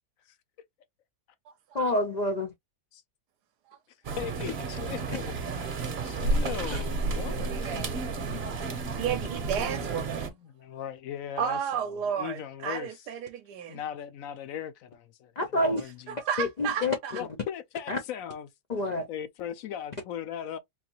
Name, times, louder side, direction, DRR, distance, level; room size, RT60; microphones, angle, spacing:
voice 1, 1.7-2.5 6.7-6.8 15.4-15.8 16.4-16.9 17.9-18.0 18.7-19.1, left 1 dB, 90° left, 0.3 m, -27 dB
sound 1, 4.0-10.3, right 3 dB, 50° right, 0.9 m, -31 dB
voice 2, 4.2-7.8 10.2-11.9 12.2-13.0 13.7-16.2 17.1-18.5 19.1-20.6, left 9 dB, 70° left, 0.9 m, -39 dB
voice 3, 8.8-10.3 11.4-13.8 16.1-17.2, right 8 dB, 80° right, 1.1 m, -32 dB
3.9 x 2.6 x 2.8 m
omnidirectional pair, 1.7 m